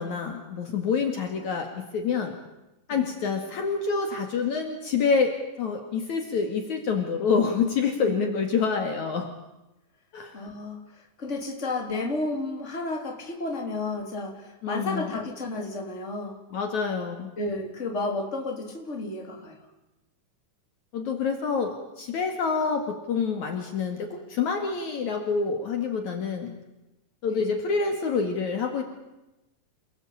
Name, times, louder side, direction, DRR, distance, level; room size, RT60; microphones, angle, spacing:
voice 1, 0.0-2.4 2.9-9.3 10.1-10.3 14.6-15.1 16.5-17.3 20.9-26.5 27.2-28.8, left 5 dB, 60° left, 4 dB, 3.2 m, -27 dB
voice 2, 10.3-16.4 17.4-19.7 27.3-27.4, left 2 dB, 20° left, 2 dB, 3.7 m, -32 dB
28.5 x 19.5 x 8.7 m, 0.98 s
omnidirectional pair, 4.1 m